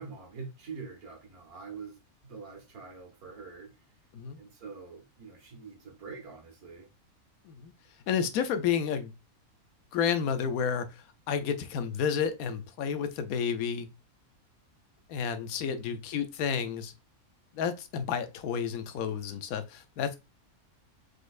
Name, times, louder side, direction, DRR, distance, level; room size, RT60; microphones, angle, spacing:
voice 1, 0.0-3.9 4.4-6.9 15.6-16.0, right 4 dB, 80° right, 1.9 m, -45 dB
voice 2, 8.1-9.1 9.9-13.9 15.1-16.9 17.5-20.1, left 7 dB, 80° left, 1.1 m, -31 dB
4.9 x 4.1 x 2.5 m
omnidirectional pair, 1.5 m